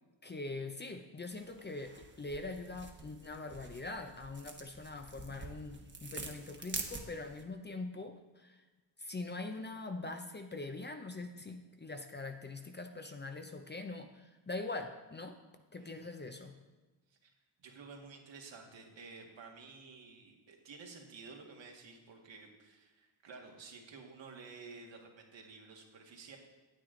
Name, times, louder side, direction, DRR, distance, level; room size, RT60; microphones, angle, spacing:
voice 1, 0.2-8.6 9.0-15.4 15.7-16.6, left 3 dB, 20° left, 6 dB, 0.7 m, -43 dB
sound 1, 1.3-7.4, right 3 dB, 25° right, 1.1 m, -47 dB
voice 2, 15.8-16.1 17.2-17.3 17.6-26.4, right 4 dB, 65° right, 1 dB, 1.8 m, -52 dB
9.1 x 8.5 x 3.8 m, 1.2 s
cardioid pair, 75°, 48 cm